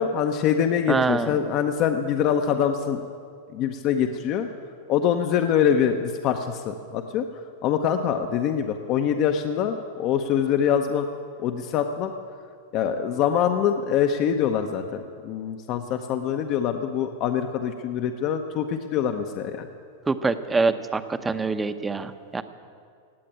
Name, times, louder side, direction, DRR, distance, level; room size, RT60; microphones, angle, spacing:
voice 1, 0.0-3.0 3.5-4.5 4.9-7.2 7.6-11.1 11.4-12.1 12.7-19.7, left 8 dB, 45° left, 6 dB, 0.8 m, -24 dB
voice 2, 0.9-1.4 20.1-22.4, right 4 dB, 15° right, 11 dB, 0.8 m, -25 dB
17.5 x 7.7 x 9.1 m, 2.3 s
hypercardioid pair, 105°, 0 cm